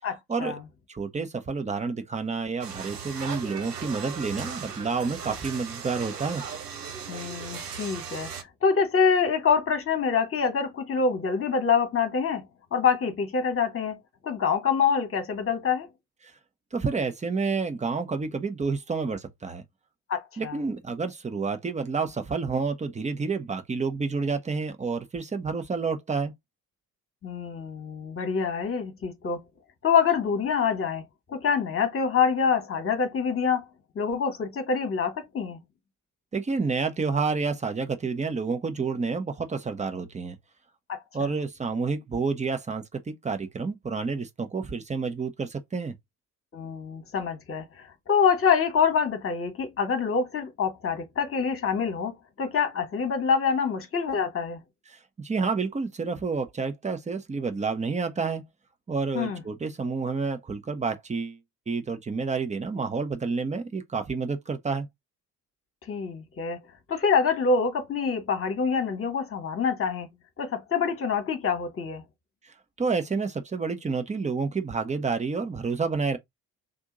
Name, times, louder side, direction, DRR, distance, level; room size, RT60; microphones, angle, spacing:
voice 1, 0.0-0.6 7.1-12.5 12.7-14.0 14.2-15.9 20.1-20.6 27.2-29.4 29.8-31.0 31.3-33.7 33.9-35.6 40.9-41.4 46.5-54.6 59.1-59.4 65.8-66.6 66.9-72.0, left 6 dB, 30° left, 1.3 m, -26 dB
voice 2, 0.9-6.4 16.7-19.6 20.4-26.3 36.3-40.4 41.1-45.9 54.9-58.4 58.9-61.4 61.7-64.9 72.4-76.2, right 4 dB, 15° right, 0.8 m, -29 dB
sound 1, 2.6-8.4, right 6 dB, 90° right, 0.6 m, -37 dB
3.8 x 2.7 x 3.8 m
figure-of-eight pair, 50°, 46 cm